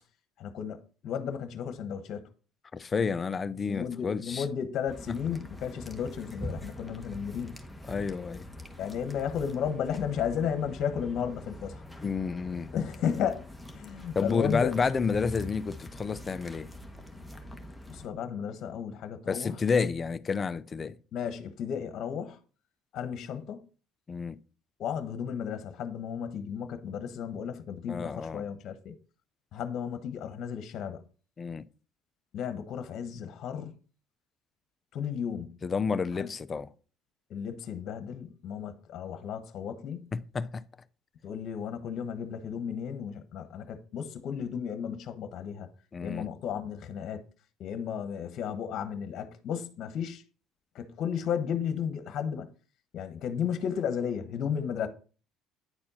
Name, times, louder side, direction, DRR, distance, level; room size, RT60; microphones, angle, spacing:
voice 1, 0.4-2.2 3.7-7.5 8.8-11.8 12.7-13.5 13.7-14.7 17.9-19.5 21.1-22.4 22.9-23.6 24.8-28.9 29.5-31.0 32.3-33.7 34.9-35.6 36.2-36.3 37.3-40.1 41.2-45.7 46.0-47.2 47.6-50.2 50.7-52.5 52.9-54.9, left 8 dB, 60° left, 1.2 m, -34 dB
voice 2, 2.7-4.5 5.1-5.2 7.9-8.5 12.0-12.7 14.1-16.7 19.3-21.0 24.1-24.4 27.9-28.4 31.4-31.6 35.6-36.7 40.1-40.6 45.9-46.3, left 5 dB, 30° left, 0.5 m, -30 dB
sound 1, 4.9-18.1, left 1 dB, 5° left, 1.3 m, -44 dB
9.7 x 4.3 x 4.2 m
supercardioid pair, 90°, 0 cm